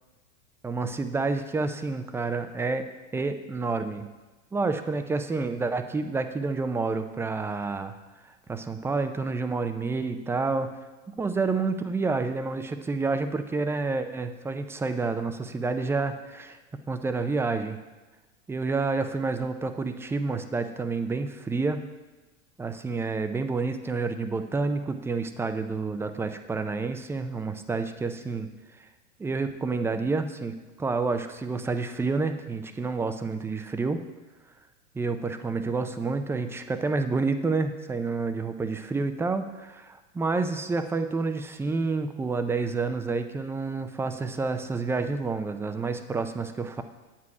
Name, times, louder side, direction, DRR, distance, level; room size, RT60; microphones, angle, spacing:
voice 1, 0.6-2.9 3.1-4.1 4.5-7.9 8.5-10.7 11.1-16.6 16.9-17.8 18.5-21.8 22.6-28.5 28.8-28.9 29.2-34.0 34.9-46.8, right 3 dB, 5° right, 8 dB, 0.4 m, -29 dB
9.9 x 8.2 x 4.7 m, 1.2 s
supercardioid pair, 115°, 40 cm